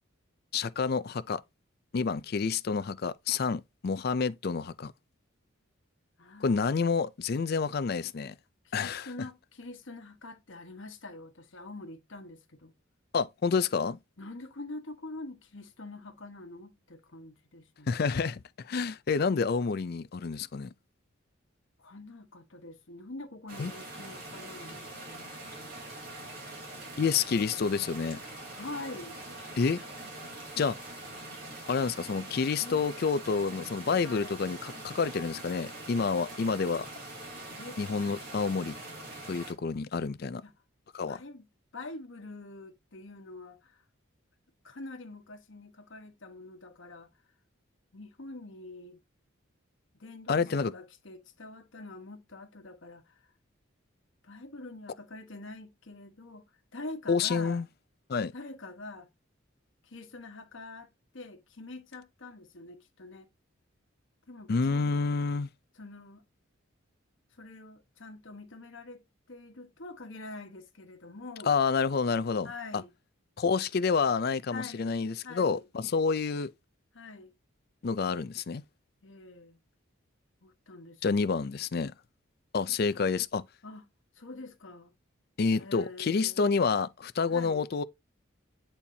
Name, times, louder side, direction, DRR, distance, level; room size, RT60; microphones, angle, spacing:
voice 1, 0.5-1.4 1.9-4.9 6.4-8.3 8.7-9.1 13.1-14.0 17.9-20.7 23.6-23.7 27.0-28.2 29.6-29.8 30.6-30.8 31.7-36.9 37.8-38.8 39.3-40.4 40.9-41.2 50.3-50.7 57.1-57.6 58.1-58.3 64.5-65.5 71.5-72.8 73.4-76.5 77.8-78.6 81.0-81.9 82.5-83.5 85.4-87.8, left 5 dB, 45° left, 0.4 m, -29 dB
voice 2, 6.2-6.6 8.6-12.7 14.2-18.1 21.8-25.2 27.1-27.3 28.5-29.2 32.6-32.8 34.0-34.4 37.6-37.8 40.4-40.5 41.1-41.5 41.7-43.8 44.6-47.1 47.9-49.0 50.0-53.2 54.2-56.4 56.7-57.6 58.3-59.1 59.8-63.3 64.3-65.0 65.7-66.2 67.3-69.0 69.3-71.6 72.4-72.9 74.5-74.9 75.2-75.6 76.9-77.3 79.0-79.6 80.4-81.5 83.6-83.8 84.1-84.9 85.6-86.6 87.3-87.7, left 2 dB, 65° left, 1.2 m, -45 dB
sound 1, 23.5-39.5, right 2 dB, 45° right, 3.6 m, -43 dB
8.5 x 4.4 x 2.7 m
head